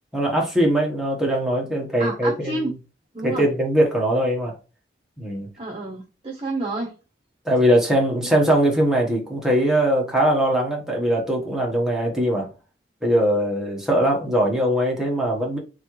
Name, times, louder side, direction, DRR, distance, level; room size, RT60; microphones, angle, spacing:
voice 1, 0.1-2.7 3.2-4.5 5.2-5.5 7.4-12.5 13.0-15.6, right 1 dB, 5° right, 1.2 m, -21 dB
voice 2, 2.0-2.7 3.1-3.5 5.6-6.9, right 2 dB, 30° right, 0.9 m, -29 dB
3.6 x 3.2 x 4.5 m
head